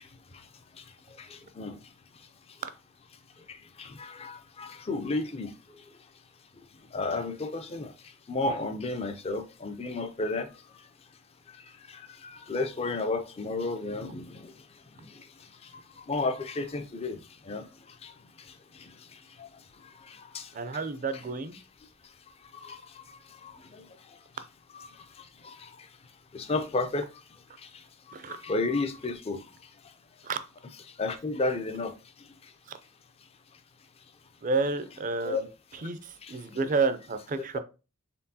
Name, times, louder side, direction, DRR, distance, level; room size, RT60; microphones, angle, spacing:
voice 1, 1.2-1.8 3.5-5.5 6.9-7.9 8.3-10.5 11.9-14.5 16.1-17.2 17.5-17.7 18.0-18.1 19.4-19.5 20.1-20.5 21.1-21.3 22.6-22.8 23.4-23.8 24.7-24.9 25.4-25.7 26.3-27.1 28.3-29.4 31.0-31.9 35.2-35.4 36.2-36.6, left 3 dB, 30° left, 0.4 m, -32 dB
voice 2, 20.5-21.6 28.1-28.4 30.2-30.4 34.4-35.5 35.8-37.6, right 4 dB, 40° right, 0.4 m, -30 dB
4.3 x 3.5 x 2.7 m
head